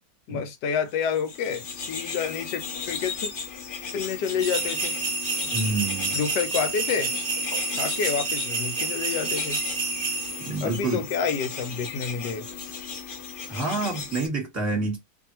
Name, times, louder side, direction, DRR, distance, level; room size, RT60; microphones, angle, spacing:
voice 1, 0.3-3.3 3.9-4.9 5.4-5.5 6.1-7.1 7.8-9.6 10.6-12.5 13.6-13.8, left 6 dB, 85° left, 1.2 m, -29 dB
sound 1, 1.0-14.3, left 5 dB, 65° left, 0.5 m, -36 dB
sound 2, 4.4-10.6, right 3 dB, 55° right, 0.6 m, -29 dB
voice 2, 5.5-6.2 10.5-11.0 13.5-15.0, right 3 dB, 10° right, 1.2 m, -28 dB
2.6 x 2.6 x 2.8 m
omnidirectional pair, 1.8 m